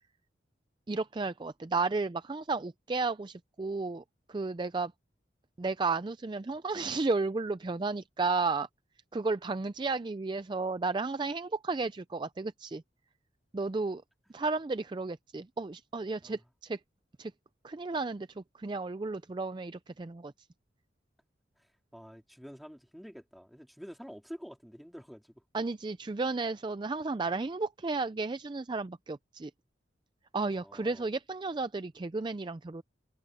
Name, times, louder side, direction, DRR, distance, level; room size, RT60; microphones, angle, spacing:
voice 1, 0.9-4.0 4.3-4.9 5.6-8.7 9.1-12.8 13.5-14.0 14.3-16.8 17.2-17.3 17.6-20.3 25.5-29.5 30.3-32.8, right 3 dB, 25° right, 0.4 m, -33 dB
voice 2, 21.6-25.4 30.5-31.1, equal, ahead, 3.7 m, -48 dB
head